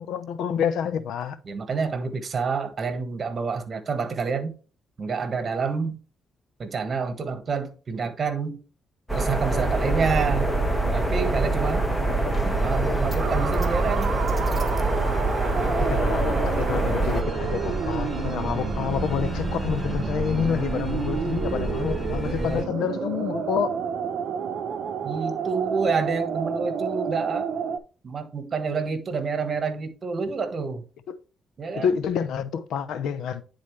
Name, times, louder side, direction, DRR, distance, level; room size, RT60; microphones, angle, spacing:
voice 1, 0.0-1.4 15.6-23.7 31.1-31.2 31.7-33.4, left 7 dB, 80° left, 0.7 m, -28 dB
voice 2, 1.4-4.5 5.0-6.0 6.6-8.6 9.1-10.6 10.9-11.8 12.6-14.1 22.3-22.6 25.0-27.5 28.0-30.8 31.6-32.0, right 5 dB, 45° right, 1.5 m, -28 dB
sound 1, 9.1-17.2, right 2 dB, 5° left, 1.5 m, -25 dB
sound 2, 9.5-22.6, equal, 20° left, 4.0 m, -31 dB
sound 3, 13.2-27.8, right 7 dB, 65° right, 0.7 m, -30 dB
9.8 x 4.0 x 3.2 m
cardioid pair, 90°, 0 cm